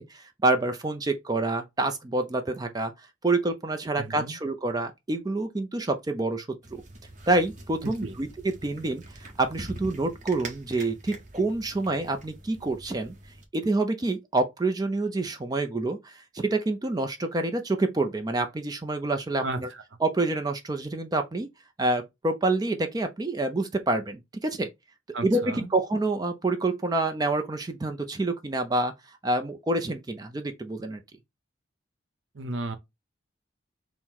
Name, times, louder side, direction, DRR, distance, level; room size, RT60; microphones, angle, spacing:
voice 1, 0.0-2.9 3.2-6.8 7.3-13.1 13.5-19.7 20.0-21.5 21.8-24.7 25.2-28.9 29.2-31.0, right 2 dB, 20° right, 0.4 m, -27 dB
voice 2, 4.0-4.4 7.8-8.2 19.4-19.8 25.1-25.7 32.3-32.8, right 2 dB, 70° right, 0.7 m, -34 dB
sound 1, 6.6-13.5, right 2 dB, 40° right, 0.7 m, -44 dB
4.4 x 2.1 x 3.7 m
head